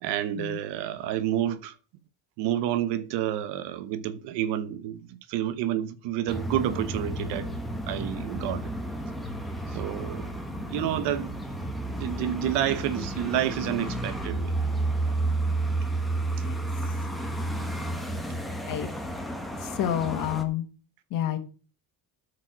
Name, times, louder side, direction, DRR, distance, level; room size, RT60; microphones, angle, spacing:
voice 1, 0.0-1.7 2.4-7.5 7.9-8.6 9.7-10.3 10.7-11.3 12.0-14.6, right 11 dB, 80° right, 1.2 m, -29 dB
sound 1, 6.3-20.4, right 2 dB, ahead, 1.1 m, -31 dB
voice 2, 19.6-20.7 21.1-21.4, left 11 dB, 50° left, 1.7 m, -29 dB
13.0 x 4.9 x 6.0 m
cardioid pair, 170°, 41 cm